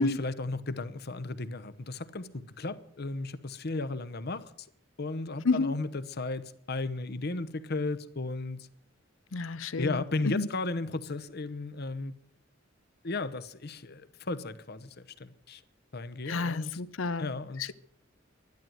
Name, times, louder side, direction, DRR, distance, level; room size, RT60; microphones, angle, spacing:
voice 1, 0.0-4.5 5.0-8.7 9.8-12.1 13.0-15.6 15.9-16.7 17.2-17.7, left 3 dB, 55° left, 1.0 m, -35 dB
voice 2, 5.4-5.8 9.3-10.5 16.3-17.3 17.6-17.7, left 3 dB, 85° left, 0.7 m, -30 dB
12.5 x 12.0 x 9.2 m
head